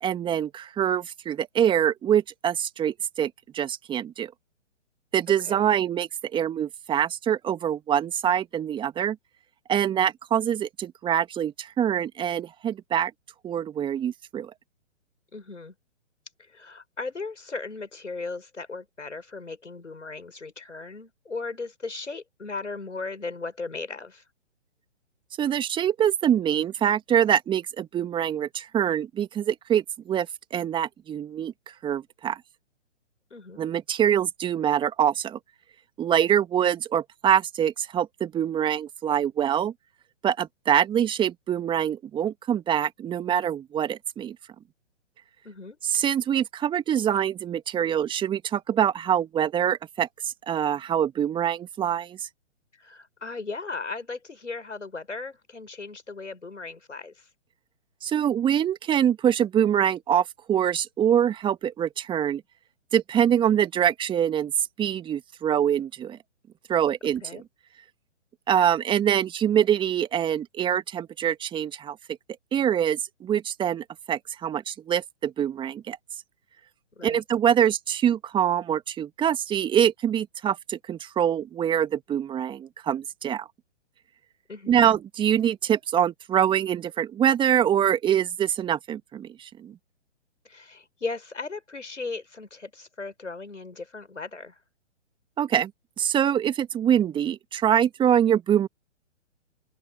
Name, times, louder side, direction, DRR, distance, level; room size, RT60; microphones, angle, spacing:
voice 1, 0.0-4.3 5.1-9.2 9.7-13.1 13.4-14.5 25.4-32.4 33.6-35.4 36.0-39.7 40.2-44.4 45.8-52.3 58.0-62.4 62.9-64.5 64.8-66.2 66.7-67.4 68.5-72.0 72.5-76.0 77.0-83.5 84.7-89.7 95.4-95.7 96.0-98.7, right 9 dB, 15° right, 2.1 m, -24 dB
voice 2, 15.3-15.7 16.5-24.2 33.3-33.6 45.4-45.8 52.8-57.2 67.2-67.4 76.9-77.2 84.5-84.8 90.4-94.6, left 3 dB, 85° left, 6.1 m, -37 dB
open air
figure-of-eight pair, 130°, 36 cm